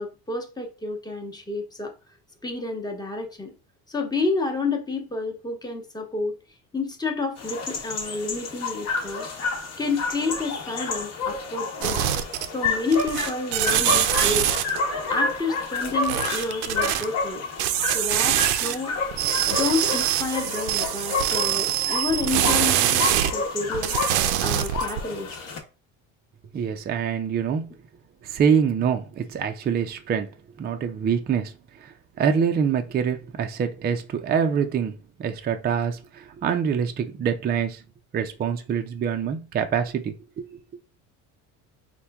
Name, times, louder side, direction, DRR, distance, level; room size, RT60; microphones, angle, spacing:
voice 1, 0.0-1.9 2.4-3.5 3.9-6.4 6.7-9.3 9.8-12.1 12.5-14.5 15.1-17.4 17.9-18.9 19.5-24.0 24.4-25.4, left 3 dB, 10° left, 0.9 m, -29 dB
sound 1, 7.4-25.6, left 4 dB, 45° left, 1.0 m, -30 dB
sound 2, 11.8-12.7 12.9-14.8 16.0-17.0 17.6-18.8 19.1-23.3 23.7-25.0, right 12 dB, 75° right, 0.6 m, -24 dB
voice 2, 26.5-27.7 28.2-30.3 30.6-31.5 31.8-31.9 32.2-37.8 38.1-40.6, right 7 dB, 25° right, 0.4 m, -25 dB
4.3 x 2.2 x 3.4 m
supercardioid pair, 105°, 38 cm